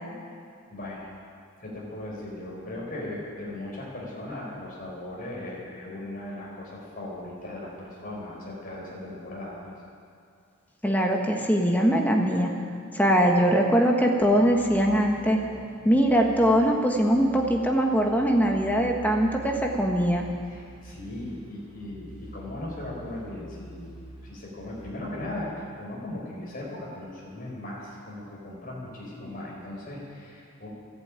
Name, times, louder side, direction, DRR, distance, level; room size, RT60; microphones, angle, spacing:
voice 1, 0.7-1.1 1.6-9.7 20.5-30.7, left 1 dB, 40° left, -4 dB, 4.8 m, -38 dB
voice 2, 10.8-12.5 12.9-15.4 15.8-20.3, equal, 10° left, 1 dB, 1.4 m, -22 dB
sound 1, 14.2-24.9, right 1 dB, 25° right, 5.0 m, -46 dB
14.0 x 11.5 x 8.9 m, 2.3 s
head